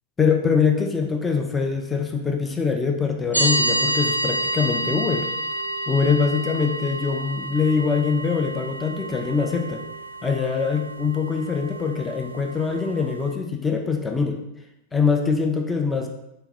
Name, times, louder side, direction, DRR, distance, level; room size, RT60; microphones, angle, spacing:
voice 1, 0.2-5.3 5.9-9.8 10.2-14.4 14.9-16.1, left 5 dB, 15° left, 4 dB, 0.4 m, -23 dB
sound 1, 3.3-13.4, right 1 dB, 85° right, 0.4 m, -29 dB
4.1 x 3.8 x 2.8 m, 0.88 s
figure-of-eight pair, 90°, 0 cm